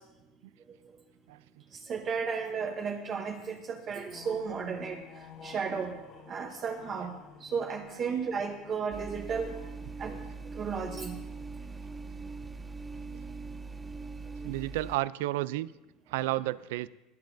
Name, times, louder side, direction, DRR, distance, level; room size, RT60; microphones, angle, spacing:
voice 1, 1.9-5.0 5.4-6.0 6.3-7.1 7.4-9.6 10.0-10.2 10.5-11.2, right 6 dB, 30° right, 3 dB, 0.8 m, -33 dB
sound 1, 4.1-12.1, left 6 dB, 40° left, 1.2 m, -53 dB
sound 2, 8.9-15.0, right 4 dB, 10° right, 0.3 m, -41 dB
voice 2, 14.4-15.7 16.1-16.9, right 17 dB, 90° right, 17 dB, 0.3 m, -31 dB
20.0 x 12.5 x 2.6 m, 1.0 s
cardioid pair, 165°, 0 cm